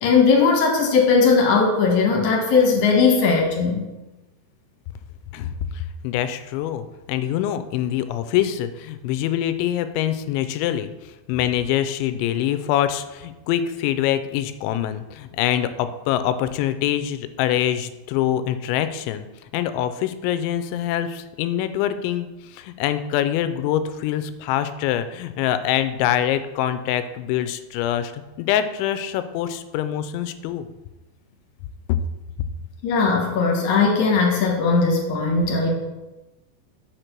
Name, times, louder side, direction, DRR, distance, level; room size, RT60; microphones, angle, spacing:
voice 1, 0.0-3.8 32.8-35.7, left 4 dB, 65° left, 0 dB, 2.0 m, -18 dB
voice 2, 5.3-19.2 19.5-30.7, left 11 dB, 85° left, 11 dB, 2.9 m, -24 dB
6.6 x 6.3 x 4.5 m, 1.1 s
omnidirectional pair, 5.2 m